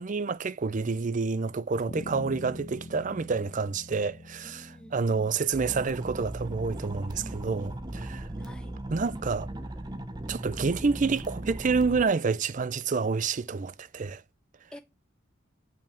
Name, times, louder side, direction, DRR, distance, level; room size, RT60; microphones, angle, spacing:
voice 1, 0.0-8.3 8.9-9.5 10.3-14.2, right 4 dB, 40° right, 0.5 m, -28 dB
Bass guitar, 1.9-6.3, left 1 dB, 40° left, 0.7 m, -44 dB
voice 2, 4.4-5.3 7.9-8.7 14.7-14.8, equal, 5° left, 1.0 m, -49 dB
sound 1, 5.5-12.0, right 1 dB, 20° right, 0.9 m, -38 dB
6.9 x 6.0 x 7.4 m
head